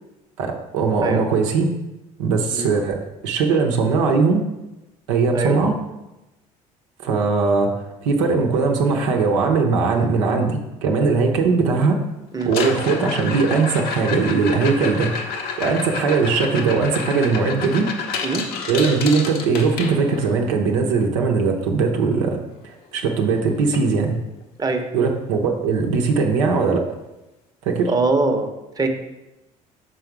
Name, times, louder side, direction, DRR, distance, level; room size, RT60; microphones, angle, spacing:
voice 1, 0.4-1.7 2.2-4.5 5.1-5.7 7.0-7.7 8.0-12.0 12.5-15.1 15.6-17.9 18.7-22.4 22.9-24.2 24.9-26.8 27.7-27.9, right 4 dB, 85° right, 2 dB, 0.8 m, -20 dB
sound 1, 12.4-20.4 22.6-22.7 23.0-23.3 23.7-23.8 24.4-24.5 26.4-26.5, left 5 dB, 70° left, 0.9 m, -29 dB
voice 2, 27.9-28.5 28.8-28.9, right 3 dB, 25° right, 4 dB, 0.9 m, -22 dB
6.3 x 3.8 x 4.7 m, 0.99 s
supercardioid pair, 70°, 16 cm